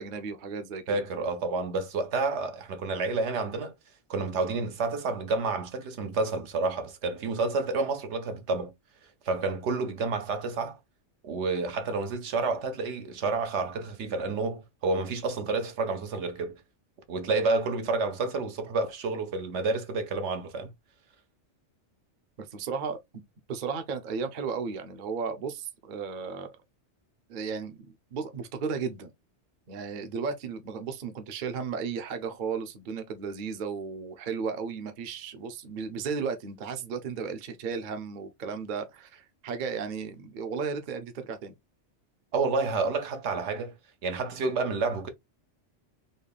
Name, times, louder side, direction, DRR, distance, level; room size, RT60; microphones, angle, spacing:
voice 1, 0.0-1.0 22.4-23.0 23.5-26.6 27.3-29.1 29.7-41.5, right 5 dB, 50° right, 0.7 m, -34 dB
voice 2, 0.9-3.7 4.1-8.7 9.2-10.8 11.2-16.6 17.1-20.7 42.3-43.7 44.0-45.1, right 3 dB, 75° right, 1.0 m, -29 dB
4.0 x 2.2 x 3.3 m
omnidirectional pair, 1.2 m